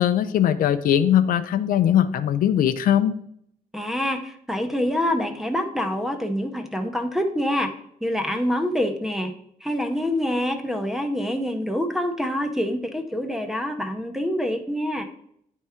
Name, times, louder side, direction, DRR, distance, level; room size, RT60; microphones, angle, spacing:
voice 1, 0.0-3.1, left 10 dB, 70° left, 11 dB, 0.5 m, -20 dB
voice 2, 3.7-7.7 8.0-9.3 9.6-15.0, left 1 dB, ahead, 6 dB, 0.6 m, -26 dB
10.0 x 3.6 x 4.3 m, 0.70 s
cardioid pair, 180°, 15 cm